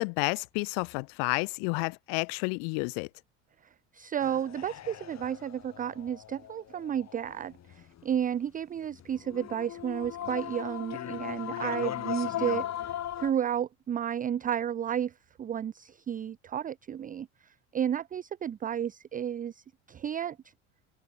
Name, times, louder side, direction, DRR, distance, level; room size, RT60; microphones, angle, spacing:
voice 1, 0.0-3.1, left 40 dB or more, 65° left, 0.6 m, -30 dB
voice 2, 3.9-12.9 13.2-15.1 15.4-17.3 17.7-20.4, right 9 dB, 20° right, 0.5 m, -32 dB
sound 1, 4.2-8.0 8.9-13.3, left 11 dB, 45° left, 3.8 m, -38 dB
open air
hypercardioid pair, 90°, 38 cm